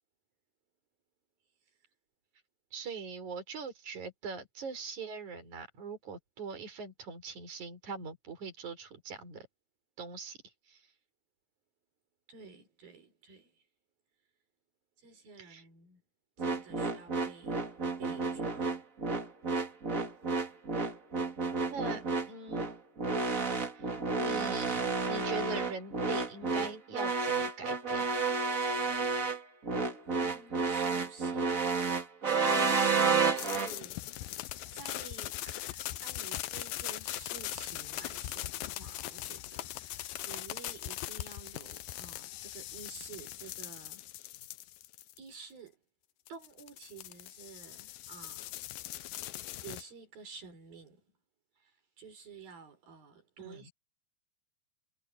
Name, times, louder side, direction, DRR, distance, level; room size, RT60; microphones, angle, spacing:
voice 1, 2.7-9.5 10.0-10.4 10.7-10.9 15.4-15.6 21.7-22.7 23.8-28.3 53.4-53.7, right 5 dB, 55° right, 6.7 m, -42 dB
voice 2, 12.3-13.6 15.0-16.0 16.4-17.6 18.0-18.8 30.1-31.9 32.4-34.4 34.7-44.1 45.2-45.8 46.3-48.6 49.6-51.1 51.6-53.7, right 5 dB, 80° right, 7.2 m, -51 dB
sound 1, 16.4-33.7, right 4 dB, 30° right, 1.9 m, -31 dB
sound 2, 33.4-45.3 46.3-49.8, left 15 dB, 80° left, 2.5 m, -40 dB
omnidirectional pair, 4.1 m